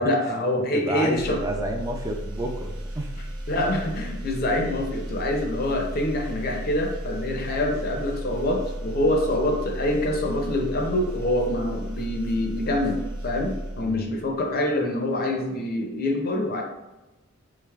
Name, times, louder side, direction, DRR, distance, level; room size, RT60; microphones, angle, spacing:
voice 1, 0.0-1.4 3.5-16.6, left 1 dB, 45° left, 2 dB, 0.5 m, -25 dB
voice 2, 0.6-3.1 13.8-14.0, right 1 dB, 15° right, 3 dB, 0.3 m, -30 dB
sound 1, 1.1-14.5, right 1 dB, 75° right, 0.6 m, -34 dB
3.7 x 3.2 x 2.3 m, 1.0 s
head